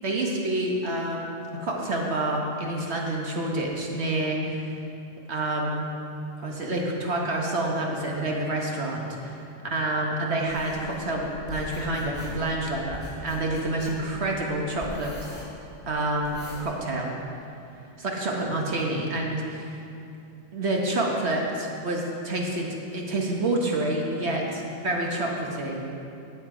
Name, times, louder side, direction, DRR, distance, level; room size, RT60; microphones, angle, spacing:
voice 1, 0.0-1.3 1.6-4.7 5.3-5.9 6.4-9.4 9.7-15.3 15.9-17.1 18.0-19.8 20.5-22.7 22.9-24.4 24.8-25.8, right 1 dB, 60° right, -1 dB, 1.3 m, -28 dB
sound 1, 10.5-16.6, left 1 dB, 35° left, 2.8 m, -42 dB
11.0 x 7.4 x 4.8 m, 2.7 s
omnidirectional pair, 1.3 m